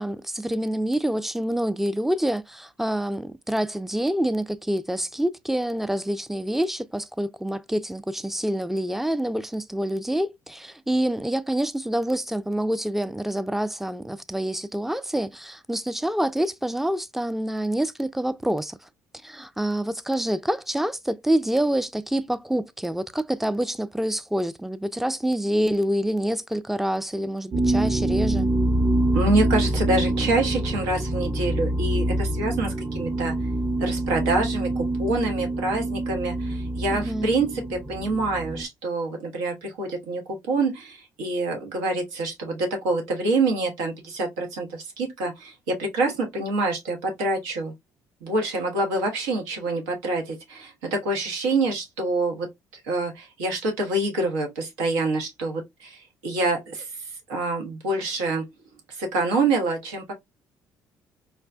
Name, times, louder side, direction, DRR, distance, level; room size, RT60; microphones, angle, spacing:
voice 1, 0.0-18.8 19.2-28.5 36.9-37.3, right 1 dB, 5° right, 0.4 m, -27 dB
sound 1, 27.5-38.6, right 1 dB, 30° right, 0.9 m, -25 dB
voice 2, 29.1-33.3 33.8-40.2 40.5-47.7 48.2-52.5 52.7-56.9 57.3-58.4 58.9-60.1, right 2 dB, 90° right, 1.0 m, -26 dB
4.6 x 2.2 x 2.5 m
hypercardioid pair, 60°, 8 cm